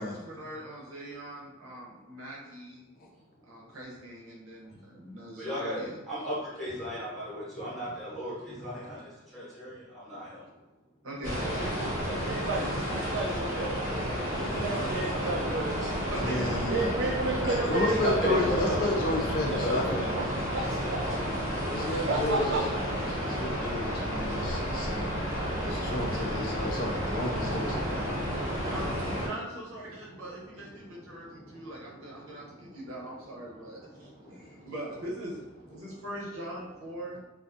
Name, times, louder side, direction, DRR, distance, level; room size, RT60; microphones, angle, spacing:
voice 1, 0.0-2.9 3.5-6.0 11.0-11.4 16.1-16.5 28.6-28.9 29.2-35.4 35.7-37.2, right 1 dB, 85° right, -4 dB, 0.8 m, -41 dB
voice 2, 4.6-5.0 5.4-10.5 11.4-11.5 12.0-12.7 13.6-14.6 15.8-16.0 17.9-18.9 19.2-20.1 26.8-28.7 29.8-34.7 35.9-36.0, equal, ahead, -10 dB, 0.8 m, -39 dB
sound 1, 11.2-29.3, equal, 85° left, 1.2 m, -31 dB
voice 3, 11.8-13.9 14.3-15.9 16.7-18.7 19.4-19.5 20.5-20.8 21.8-22.6, right 3 dB, 60° right, -2 dB, 0.3 m, -32 dB
voice 4, 16.2-16.9 17.4-20.1 21.7-22.6 23.1-25.1 25.6-27.8, left 2 dB, 40° left, 0 dB, 0.3 m, -32 dB
2.4 x 2.3 x 2.5 m, 1.0 s
head